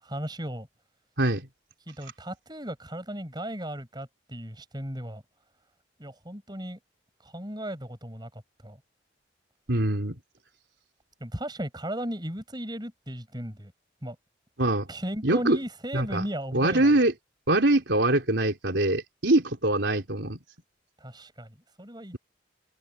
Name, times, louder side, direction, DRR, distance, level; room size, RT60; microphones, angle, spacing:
voice 1, 0.0-0.7 1.9-5.2 6.0-6.8 7.2-8.8 11.2-13.7 14.0-14.1 14.9-16.9 21.0-22.2, equal, 20° right, 6.9 m, -36 dB
voice 2, 1.2-1.5 9.7-10.2 14.6-14.9 15.2-15.6 15.9-16.2 16.5-17.1 17.5-20.4, right 1 dB, 70° right, 3.7 m, -23 dB
head